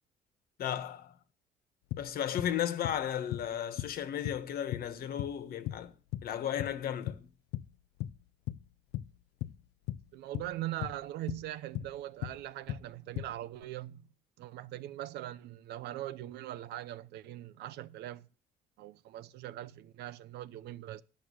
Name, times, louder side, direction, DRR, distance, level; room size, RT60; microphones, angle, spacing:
voice 1, 0.6-1.1 2.0-5.9 6.2-7.3, left 10 dB, 60° left, 1.3 m, -34 dB
sound 1, 1.9-2.6 2.8-3.0 3.3-4.0 4.2-5.4 5.7-6.3 6.6-7.2 7.5-7.7 8.0-8.7 8.9-10.1 10.3-11.5 11.7-12.9 13.2-13.6, left 14 dB, 80° left, 0.4 m, -38 dB
voice 2, 10.1-14.0 14.4-18.3 18.8-21.0, right 14 dB, 80° right, 0.7 m, -41 dB
11.5 x 6.3 x 6.4 m
cardioid pair, 110°, 17 cm